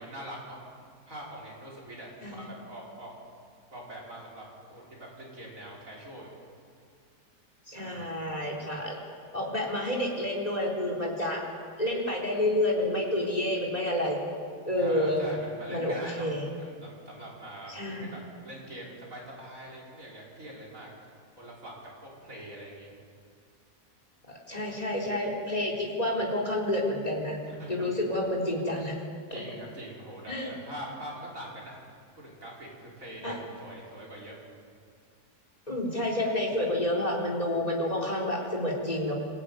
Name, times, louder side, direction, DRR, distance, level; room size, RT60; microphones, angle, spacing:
voice 1, 0.0-3.2 3.7-6.3 7.7-8.3 14.8-16.3 16.6-20.9 21.4-22.9 27.4-27.9 29.3-31.8 32.2-34.4, right 1 dB, 50° right, -3 dB, 5.8 m, -44 dB
voice 2, 7.7-9.0 9.3-11.4 11.8-14.2 14.7-15.2 15.7-16.5 17.7-18.1 24.5-27.4 27.7-29.0 29.3-29.4 30.3-30.5 33.2-33.4 35.7-39.1, left 1 dB, 20° left, -1 dB, 4.2 m, -29 dB
26.0 x 15.5 x 9.6 m, 2.2 s
omnidirectional pair, 1.8 m